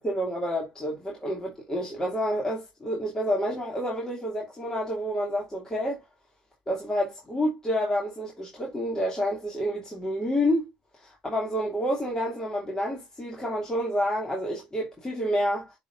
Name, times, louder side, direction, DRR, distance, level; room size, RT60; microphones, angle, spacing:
voice 1, 0.0-6.0 6.7-10.7 11.0-15.7, equal, 20° left, 2.9 m, -29 dB
10.5 x 3.9 x 2.7 m
supercardioid pair, 65°, 3 cm